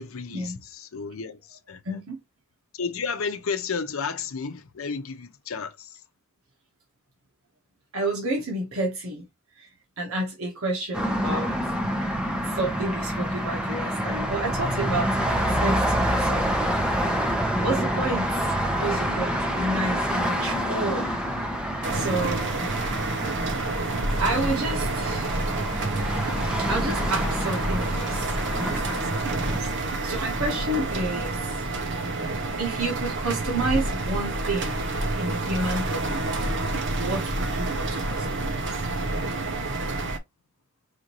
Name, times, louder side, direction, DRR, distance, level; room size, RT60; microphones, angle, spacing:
voice 1, 0.0-2.0 2.7-5.9, left 5 dB, 75° left, 0.7 m, -32 dB
voice 2, 1.8-2.2 7.9-9.2 9.6-9.7 10.0-11.5 12.3-16.5 17.6-21.2 21.9-22.7 24.2-25.4 26.7-31.6 32.6-34.8 35.1-36.2 37.0-38.7, right 2 dB, 80° right, 1.2 m, -30 dB
sound 1, 10.9-29.6, equal, 5° right, 0.8 m, -27 dB
sound 2, 21.8-40.2, right 2 dB, 60° right, 0.9 m, -28 dB
4.9 x 2.6 x 3.0 m
head